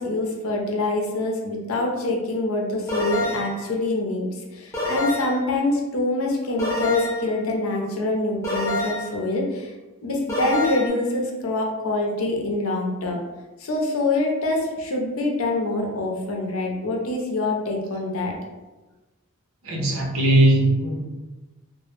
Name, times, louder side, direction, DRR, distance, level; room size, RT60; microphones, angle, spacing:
voice 1, 0.0-9.7 10.0-13.2 13.6-18.3, left 2 dB, 75° left, 0 dB, 0.5 m, -25 dB
sound 1, 2.9-3.6 4.7-5.5 6.6-7.3 8.4-9.2 10.3-10.9, left 2 dB, 10° left, 0.6 m, -27 dB
voice 2, 19.7-21.0, right 1 dB, 75° right, -1 dB, 0.6 m, -19 dB
2.1 x 2.0 x 3.0 m, 1.1 s
head